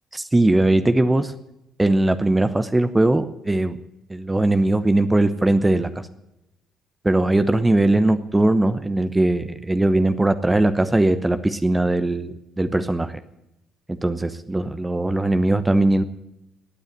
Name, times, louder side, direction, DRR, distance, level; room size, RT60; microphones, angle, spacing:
voice 1, 0.1-1.3 1.8-3.8 4.1-6.1 7.0-13.1 13.9-16.0, right 2 dB, 15° right, 11 dB, 0.9 m, -20 dB
18.5 x 9.2 x 8.2 m, 0.85 s
figure-of-eight pair, 45°, 0 cm